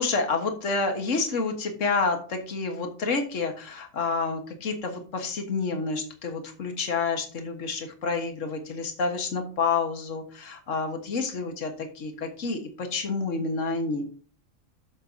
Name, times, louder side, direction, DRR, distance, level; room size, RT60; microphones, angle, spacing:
voice 1, 0.0-14.0, left 4 dB, 70° left, 4 dB, 1.8 m, -29 dB
13.0 x 7.5 x 2.8 m, 0.40 s
omnidirectional pair, 1.4 m